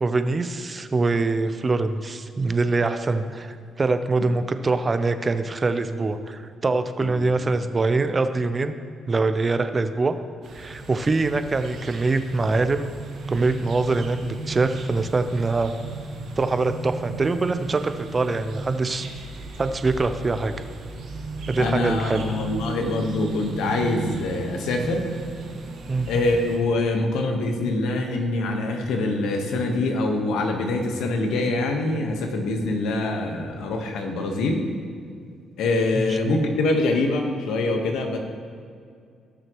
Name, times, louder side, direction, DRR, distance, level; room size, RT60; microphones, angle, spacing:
voice 1, 0.0-8.7 9.1-10.2 10.5-12.9 13.3-15.7 16.4-19.1 19.6-20.5 21.5-22.3 25.9-26.1 35.9-36.4, right 3 dB, 30° right, 9 dB, 0.7 m, -24 dB
voice 2, 7.0-7.4 21.6-25.1 26.1-34.6 35.6-38.2, left 2 dB, 85° left, 3 dB, 1.3 m, -24 dB
sound 1, 10.4-26.6, right 3 dB, 70° right, 1.5 m, -35 dB
17.0 x 6.3 x 3.1 m, 2.3 s
cardioid pair, 90°, 0 cm